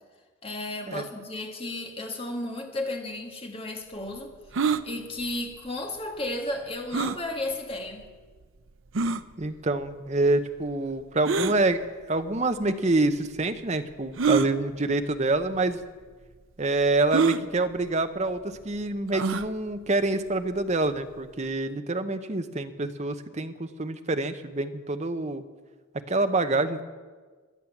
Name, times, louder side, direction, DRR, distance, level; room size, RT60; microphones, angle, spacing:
voice 1, 0.4-4.3 4.8-8.1, left 2 dB, 25° left, 2 dB, 1.9 m, -33 dB
sound 1, 4.5-4.8 6.9-7.2 8.0-8.1 9.0-9.2 11.2-11.6 12.6-12.7 14.2-14.5 15.4-15.6 15.8-15.9 17.1-17.4 19.1-19.5, right 5 dB, 65° right, 0.6 m, -25 dB
voice 2, 9.4-15.8 16.6-25.4 26.1-26.8, right 2 dB, 30° right, 9 dB, 0.8 m, -26 dB
17.5 x 11.0 x 7.2 m, 1.4 s
head